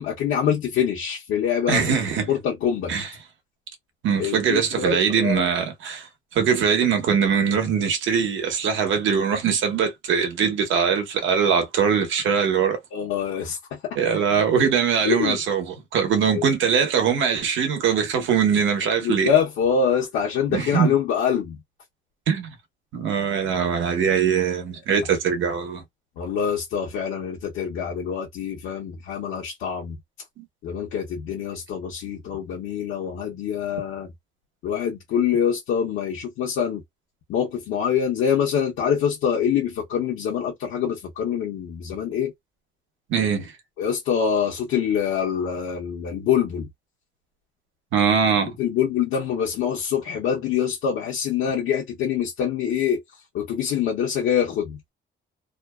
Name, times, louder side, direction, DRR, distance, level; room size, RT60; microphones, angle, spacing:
voice 1, 0.0-1.8 2.3-2.9 4.2-5.4 12.9-13.6 13.8-14.0 15.0-15.4 16.3-16.4 19.0-21.6 24.1-24.2 26.2-30.0 30.6-34.1 34.6-36.8 37.3-42.3 43.8-46.7 48.6-53.0 53.3-54.8, left 8 dB, 90° left, 0.8 m, -25 dB
voice 2, 1.7-2.3 2.9-3.1 4.0-12.8 14.0-19.3 20.5-21.0 22.3-22.5 22.9-25.8 30.4-30.5 43.1-43.5 47.9-48.5, right 7 dB, 75° right, 0.9 m, -22 dB
2.6 x 2.2 x 2.2 m
cardioid pair, 90°, 20 cm